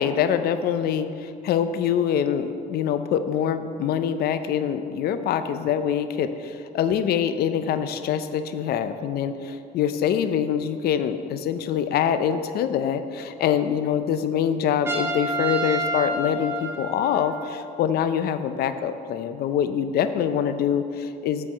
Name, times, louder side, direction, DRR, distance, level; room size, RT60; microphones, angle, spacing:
voice 1, 0.0-21.5, left 8 dB, 65° left, 10 dB, 0.5 m, -25 dB
Trumpet, 14.8-17.5, right 2 dB, 15° right, 1.1 m, -28 dB
7.7 x 4.7 x 7.1 m, 2.5 s
cardioid pair, 110°, 17 cm